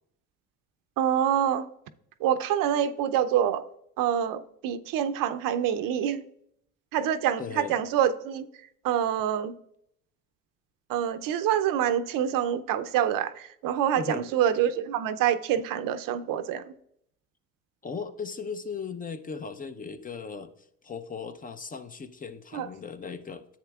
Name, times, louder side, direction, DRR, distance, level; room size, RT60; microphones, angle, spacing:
voice 1, 1.0-1.7 2.2-3.6 4.0-6.2 6.9-8.5 8.8-9.5 10.9-16.7 22.5-22.7, right 10 dB, 65° right, 0.6 m, -26 dB
voice 2, 7.4-7.8 14.0-14.3 17.8-20.5 20.8-23.5, left 5 dB, 25° left, 0.6 m, -37 dB
10.0 x 7.8 x 2.3 m
supercardioid pair, 75°, 36 cm